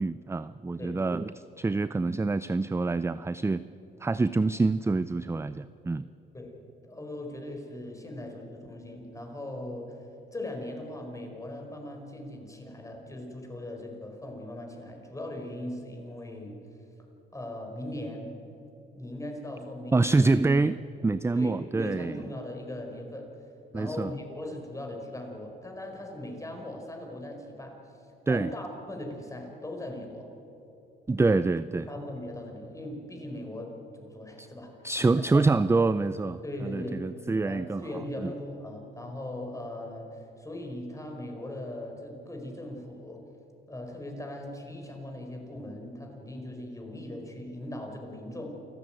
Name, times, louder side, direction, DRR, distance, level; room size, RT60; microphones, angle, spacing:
voice 1, 0.0-1.3 1.6-3.6 4.0-6.0 19.9-20.8 21.0-22.2 23.7-24.1 28.3-28.5 31.1-31.9 34.4-34.5 34.8-38.3, right 3 dB, 15° right, 15 dB, 0.5 m, -26 dB
voice 2, 6.8-16.6 17.3-18.4 18.9-20.3 21.3-23.5 23.7-27.8 28.3-30.3 31.9-34.8 35.1-35.4 36.4-37.1 37.4-43.3 43.7-48.6, left 1 dB, 15° left, 2 dB, 5.1 m, -39 dB
28.5 x 14.0 x 9.1 m, 3.0 s
cardioid pair, 90°, 20 cm